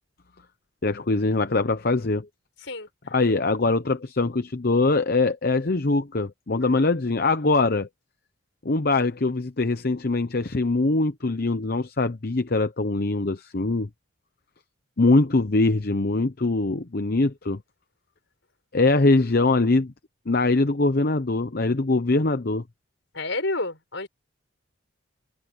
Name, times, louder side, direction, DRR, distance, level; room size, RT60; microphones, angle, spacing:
voice 1, 0.8-2.3 3.1-7.9 8.6-13.9 15.0-17.6 18.7-19.9 20.3-22.6, left 3 dB, 50° left, 0.8 m, -22 dB
voice 2, 23.1-24.1, left 2 dB, 65° left, 6.5 m, -30 dB
head